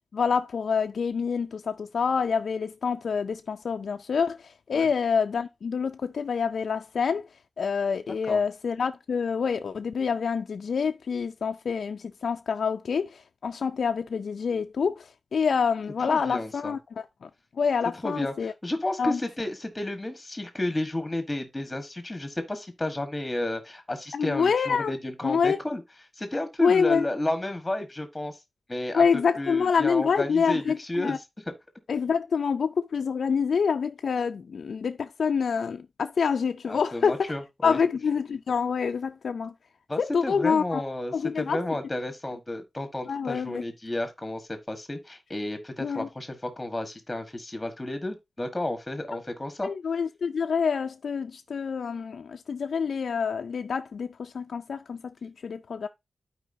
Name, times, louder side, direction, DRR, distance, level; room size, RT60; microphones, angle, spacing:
voice 1, 0.1-7.2 7.6-17.3 17.6-18.5 19.0-19.2 24.1-24.9 25.2-25.6 26.6-27.1 28.9-31.2 31.9-37.3 37.6-39.5 40.0-40.8 41.1-41.6 43.1-43.6 45.8-46.1 49.1-49.2 49.6-55.9, left 6 dB, 75° left, 0.4 m, -27 dB
voice 2, 16.1-16.7 18.0-25.8 26.2-28.4 28.7-29.0 29.4-31.2 36.7-37.8 39.9-49.7, left 1 dB, 15° left, 1.3 m, -32 dB
12.0 x 4.7 x 2.7 m
wide cardioid pair, 150°, 0 cm